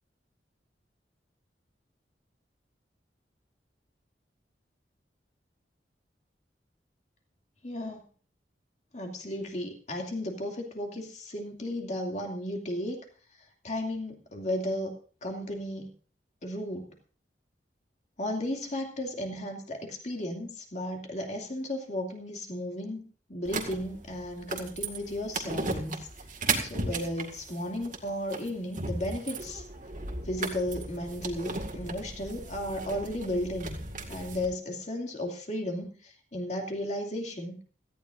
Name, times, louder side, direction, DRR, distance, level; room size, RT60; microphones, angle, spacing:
voice 1, 7.6-8.0 8.9-13.0 13.6-14.9 15.2-15.9 16.4-16.9 18.2-26.0 26.6-29.6 30.2-33.8 34.1-37.6, left 1 dB, 45° left, 2 dB, 2.6 m, -34 dB
sound 1, 23.4-34.4, right 3 dB, 50° right, 2.0 m, -36 dB
17.5 x 14.0 x 2.6 m, 0.40 s
head